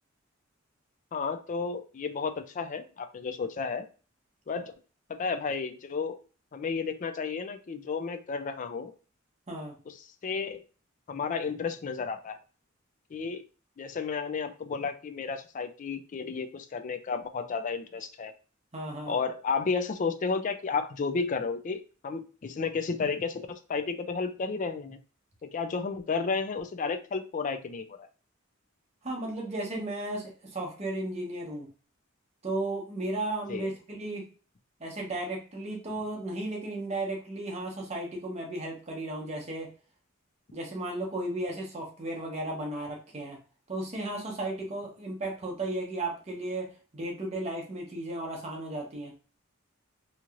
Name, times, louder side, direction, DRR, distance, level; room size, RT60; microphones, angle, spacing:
voice 1, 1.1-3.9 4.5-4.7 5.2-6.2 6.5-8.9 9.9-10.0 10.2-10.6 11.1-12.4 13.1-13.4 13.8-18.3 19.1-25.0 25.4-28.1 33.5-33.7, left 5 dB, 40° left, 9 dB, 0.3 m, -32 dB
voice 2, 18.7-19.2 29.0-31.7 32.4-34.3 34.8-39.7 40.5-43.4 43.7-49.1, right 2 dB, 30° right, -1 dB, 0.9 m, -34 dB
3.0 x 2.8 x 2.4 m, 0.36 s
head